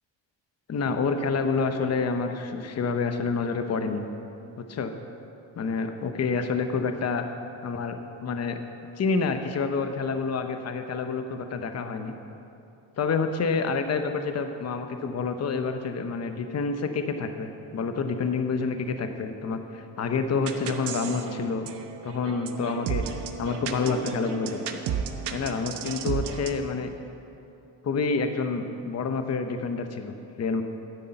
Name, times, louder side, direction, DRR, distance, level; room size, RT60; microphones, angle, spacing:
voice 1, 0.7-4.1 4.7-4.9 5.5-7.2 7.6-8.6 9.0-12.1 13.0-21.7 22.0-23.0 23.4-24.6 25.3-26.9 27.8-30.6, left 4 dB, 35° left, 7 dB, 0.9 m, -28 dB
sound 1, 20.4-26.6, right 7 dB, 65° right, 1.0 m, -34 dB
10.0 x 9.8 x 7.8 m, 2.8 s
cardioid pair, 120°, 45 cm